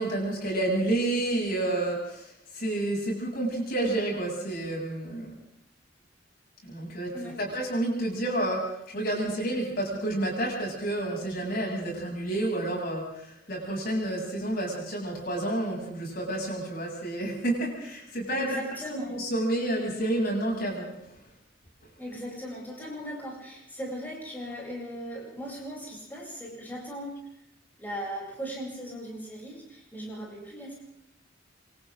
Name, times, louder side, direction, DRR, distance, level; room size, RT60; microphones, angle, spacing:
voice 1, 0.0-5.3 6.6-18.6 18.9-21.2, right 1 dB, 50° left, -2 dB, 7.9 m, -30 dB
voice 2, 18.3-19.2 22.0-27.2 27.8-30.7, equal, 10° left, -5 dB, 8.0 m, -38 dB
27.5 x 26.5 x 3.9 m, 0.75 s
head